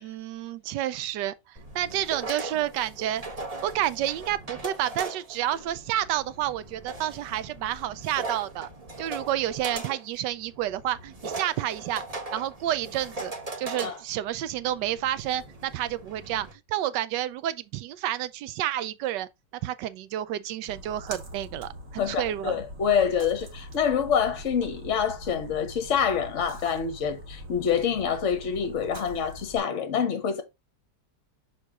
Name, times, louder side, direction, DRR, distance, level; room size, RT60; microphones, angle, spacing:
voice 1, 0.0-3.2 3.6-8.7 9.0-12.0 12.3-13.3 13.6-19.3 19.6-22.6, right 12 dB, 90° right, 1.3 m, -30 dB
sound 1, 1.6-16.5, right 2 dB, 25° right, 1.0 m, -39 dB
Splash splatter, 20.7-29.6, equal, 50° right, 1.7 m, -43 dB
voice 2, 22.0-30.4, left 7 dB, 50° left, 1.0 m, -26 dB
6.4 x 4.7 x 3.6 m
omnidirectional pair, 1.8 m